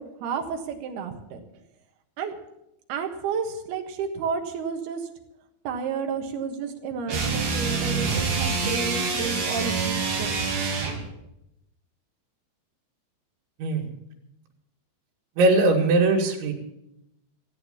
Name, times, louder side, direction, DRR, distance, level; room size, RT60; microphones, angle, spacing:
voice 1, 0.0-1.4 2.2-2.4 2.9-5.1 5.6-10.3, right 5 dB, 65° right, 4 dB, 3.2 m, -31 dB
sound 1, 7.1-11.1, right 4 dB, 45° right, 3.2 m, -26 dB
voice 2, 15.4-16.5, right 2 dB, 90° right, 2 dB, 4.5 m, -20 dB
16.0 x 8.9 x 8.6 m, 0.84 s
omnidirectional pair, 5.2 m